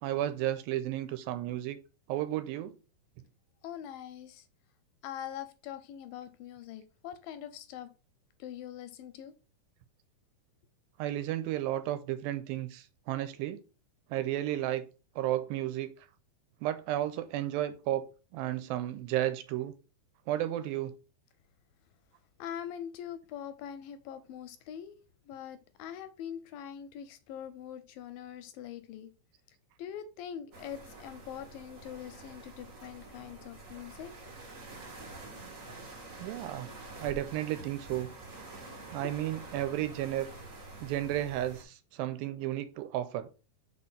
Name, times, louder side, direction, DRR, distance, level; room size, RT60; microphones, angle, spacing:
voice 1, 0.0-1.8 2.1-2.7 11.0-13.6 14.1-14.8 15.2-15.9 16.6-18.0 18.3-19.7 20.3-20.9 36.2-36.7 37.0-38.1 38.9-40.3 40.8-43.3, right 13 dB, 85° right, 2.3 m, -33 dB
voice 2, 3.6-4.5 5.0-7.9 8.4-9.3 22.4-25.0 25.3-29.1 29.8-34.1 39.0-39.3, left 9 dB, 80° left, 2.2 m, -43 dB
sound 1, 30.5-41.6, right 2 dB, 65° right, 0.8 m, -47 dB
5.0 x 4.3 x 5.4 m
omnidirectional pair, 4.3 m